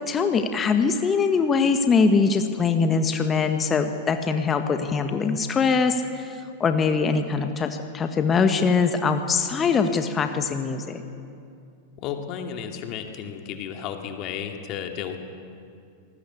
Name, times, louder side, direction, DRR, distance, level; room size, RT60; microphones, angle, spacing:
voice 1, 0.1-11.0, left 5 dB, 20° left, 7 dB, 1.5 m, -22 dB
voice 2, 12.0-15.2, left 8 dB, 40° left, 4 dB, 2.5 m, -33 dB
26.0 x 20.0 x 8.3 m, 2.4 s
figure-of-eight pair, 90°, 0 cm